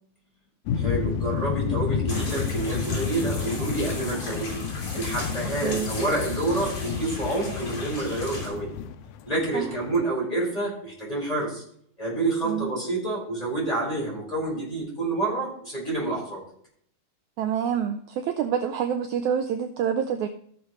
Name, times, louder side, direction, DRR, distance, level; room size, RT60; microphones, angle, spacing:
sound 1, 0.7-10.0, left 7 dB, 90° left, 1.6 m, -31 dB
voice 1, 0.7-4.6 4.9-8.7 9.3-11.6 12.0-16.4, right 2 dB, 10° left, -6 dB, 5.2 m, -28 dB
sound 2, 2.1-8.5, left 2 dB, 55° left, 4.7 m, -37 dB
voice 2, 17.4-20.3, right 8 dB, 80° right, 7 dB, 1.7 m, -27 dB
15.5 x 7.2 x 3.1 m, 0.63 s
omnidirectional pair, 4.0 m